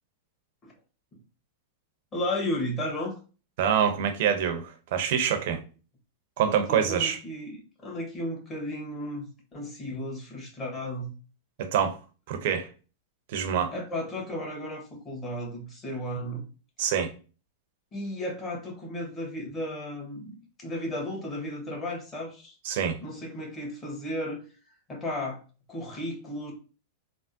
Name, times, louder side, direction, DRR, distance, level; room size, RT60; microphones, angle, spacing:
voice 1, 2.1-3.2 6.4-11.1 13.7-16.5 17.9-22.5 23.0-24.4 24.9-25.4 25.7-26.5, left 1 dB, 25° left, 1.3 m, -34 dB
voice 2, 3.6-5.6 6.4-7.2 11.6-12.0 12.3-12.7 13.3-13.7 16.8-17.1 22.6-23.0, right 8 dB, 60° right, 0.6 m, -25 dB
3.5 x 2.0 x 2.6 m
hypercardioid pair, 100°, 0 cm